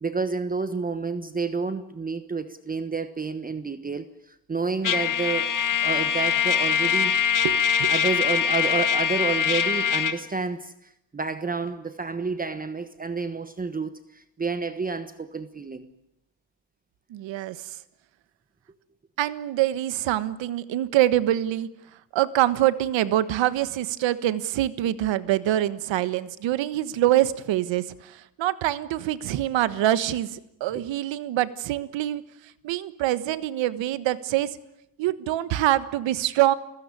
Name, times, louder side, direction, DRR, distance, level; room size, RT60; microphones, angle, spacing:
voice 1, 0.0-5.5 5.8-7.2 7.9-15.9, right 4 dB, 20° right, 11 dB, 1.2 m, -30 dB
Trumpet, 4.8-10.2, left 7 dB, 45° left, 1.8 m, -23 dB
voice 2, 7.4-7.9 17.1-17.8 19.2-21.7 22.1-32.2 32.6-34.6 35.0-36.5, right 13 dB, 80° right, 14 dB, 1.5 m, -25 dB
29.5 x 16.0 x 9.8 m, 0.85 s
cardioid pair, 125°, 44 cm